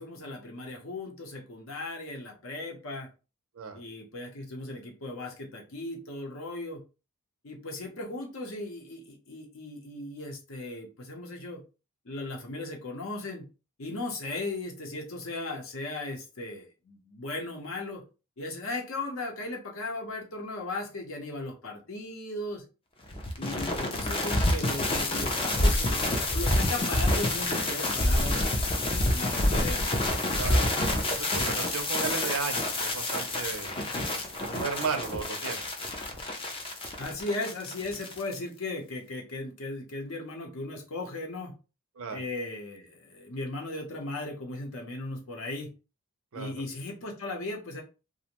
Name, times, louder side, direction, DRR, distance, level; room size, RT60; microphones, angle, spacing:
voice 1, 0.0-3.1 3.7-6.8 7.4-11.6 12.0-13.4 13.8-18.0 18.4-22.6 23.4-30.0 37.0-41.5 42.1-45.7 46.3-47.8, left 2 dB, 60° left, 1 dB, 0.7 m, -37 dB
sound 1, 23.1-38.4, left 1 dB, 25° left, 0.4 m, -28 dB
voice 2, 30.3-35.7 42.0-42.2 46.3-46.5, right 5 dB, 65° right, 7 dB, 0.5 m, -35 dB
2.5 x 2.1 x 2.8 m, 0.32 s
head